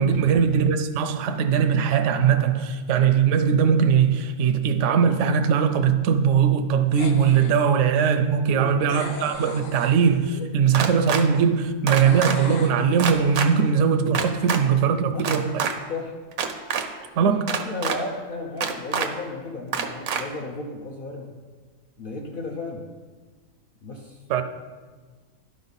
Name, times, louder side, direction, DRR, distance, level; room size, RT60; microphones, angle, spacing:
voice 1, 0.0-15.6 17.2-17.5 24.3-24.4, right 7 dB, 70° right, 0.8 m, -20 dB
sound 1, 6.9-7.6 8.9-10.5 12.0-13.5, left 3 dB, 70° left, 1.2 m, -39 dB
voice 2, 8.5-9.2 15.1-15.3 15.9-16.2 17.2-21.4 22.0-22.9 23.8-24.2, left 3 dB, 50° left, 0.7 m, -34 dB
sound 2, 10.7-11.2 11.9-12.4 13.0-13.5 14.1-14.6 15.2-15.7 16.3-16.8 17.5-18.0 18.6-19.1 19.7-20.2, right 7 dB, 85° right, 1.1 m, -25 dB
11.5 x 5.2 x 4.0 m
omnidirectional pair, 1.4 m